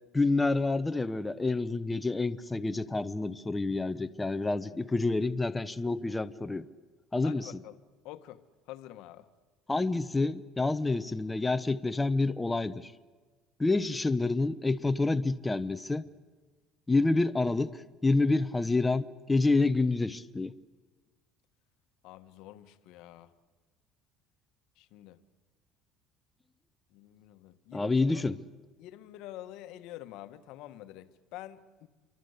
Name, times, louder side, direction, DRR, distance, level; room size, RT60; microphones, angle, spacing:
voice 1, 0.1-6.7 7.1-7.5 9.7-12.9 13.6-16.0 16.9-20.5 27.7-28.4, left 3 dB, 10° left, 12 dB, 0.7 m, -28 dB
voice 2, 7.2-7.8 8.0-8.4 8.7-9.3 22.0-23.3 24.8-25.2 26.9-28.2 28.8-31.9, left 14 dB, 75° left, 11 dB, 1.3 m, -47 dB
28.0 x 24.0 x 8.1 m, 1.3 s
cardioid pair, 135°, 0 cm